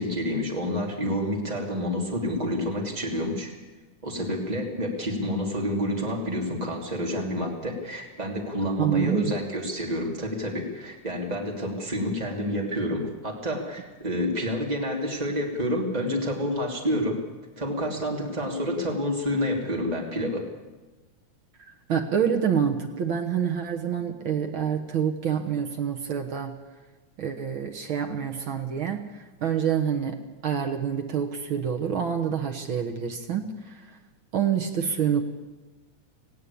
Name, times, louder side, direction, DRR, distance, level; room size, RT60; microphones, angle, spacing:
voice 1, 0.0-3.5 4.0-17.2 17.6-20.4, equal, 15° right, 0 dB, 3.0 m, -28 dB
voice 2, 8.8-9.3 21.9-26.6 27.2-33.8 34.3-35.2, right 8 dB, 55° right, 4 dB, 1.7 m, -27 dB
19.0 x 16.5 x 8.6 m, 1.2 s
omnidirectional pair, 3.5 m